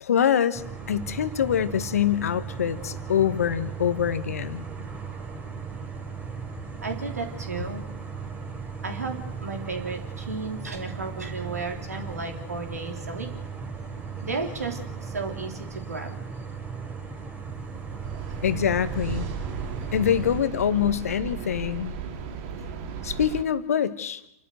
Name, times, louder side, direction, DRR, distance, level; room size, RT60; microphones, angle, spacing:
voice 1, 0.0-0.6 0.9-4.7 18.4-19.3 19.9-21.9 23.0-24.2, left 9 dB, 65° left, 14 dB, 1.3 m, -24 dB
sound 1, 0.5-20.4, right 5 dB, 20° right, 3.2 m, -37 dB
voice 2, 6.8-7.8 8.8-13.3 14.2-16.1, right 4 dB, 75° right, 4 dB, 3.3 m, -34 dB
sound 2, 17.5-23.4, right 6 dB, 45° right, 2.3 m, -35 dB
27.5 x 12.5 x 8.0 m, 0.83 s
figure-of-eight pair, 95°, 8 cm